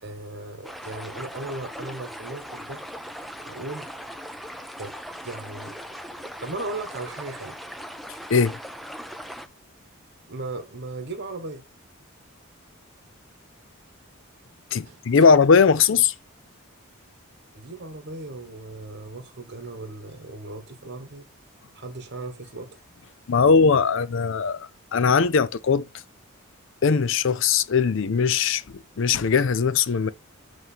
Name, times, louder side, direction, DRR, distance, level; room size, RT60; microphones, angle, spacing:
voice 1, 0.0-2.8 3.4-3.9 4.8-5.0 5.2-5.8 6.4-7.6 10.3-11.6 14.8-15.0 17.5-21.3 21.7-22.8, right 2 dB, 50° right, 1.3 m, -37 dB
sound 1, 0.6-9.5, equal, ahead, 0.4 m, -39 dB
voice 2, 14.7-16.1 23.3-25.8 26.8-28.6 29.0-30.1, left 5 dB, 60° left, 0.5 m, -20 dB
8.0 x 3.1 x 5.7 m
head